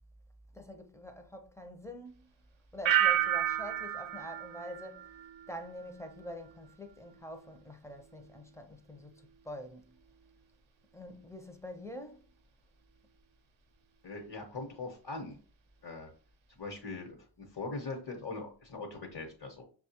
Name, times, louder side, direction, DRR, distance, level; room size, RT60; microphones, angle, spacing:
voice 1, 0.5-2.3 2.7-5.1 5.5-10.0 10.9-12.2, equal, 5° left, 0.6 m, -46 dB
sound 1, 2.9-5.7 6.0-6.5, right 11 dB, 75° right, 0.7 m, -31 dB
voice 2, 14.0-15.4 15.8-16.1 16.5-19.6, left 3 dB, 55° left, 1.1 m, -41 dB
5.8 x 2.3 x 2.8 m
wide cardioid pair, 70°, 47 cm